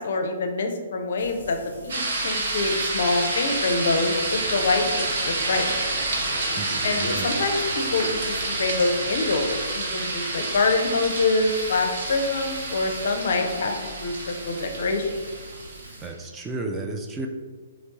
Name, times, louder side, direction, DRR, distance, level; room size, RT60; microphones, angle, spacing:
voice 1, 0.0-5.7 6.8-15.1, left 3 dB, 50° left, 5 dB, 0.5 m, -25 dB
Frying (food), 1.2-16.1, right 1 dB, 70° right, 1.3 m, -43 dB
sound 1, 1.9-16.0, right 2 dB, 50° right, 0.8 m, -29 dB
sound 2, 4.2-9.6, equal, 10° left, 1.1 m, -40 dB
voice 2, 6.6-7.3 16.0-17.3, right 2 dB, 10° right, 2 dB, 0.3 m, -33 dB
4.3 x 2.9 x 2.9 m, 1.5 s
figure-of-eight pair, 125°, 0 cm